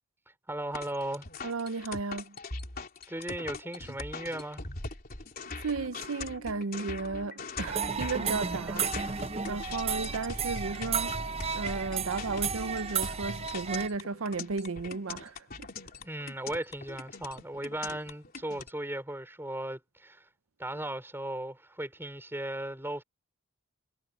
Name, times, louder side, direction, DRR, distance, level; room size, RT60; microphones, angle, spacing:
voice 1, 0.5-1.3 3.1-4.6 16.0-20.2 20.6-23.0, right 1 dB, 10° right, 5.3 m, -36 dB
sound 1, 0.7-18.7, left 3 dB, 45° left, 3.4 m, -42 dB
voice 2, 1.4-2.4 5.6-11.2 11.5-15.7, right 4 dB, 75° right, 0.7 m, -34 dB
sound 2, 7.7-13.9, right 6 dB, 30° right, 0.6 m, -33 dB
head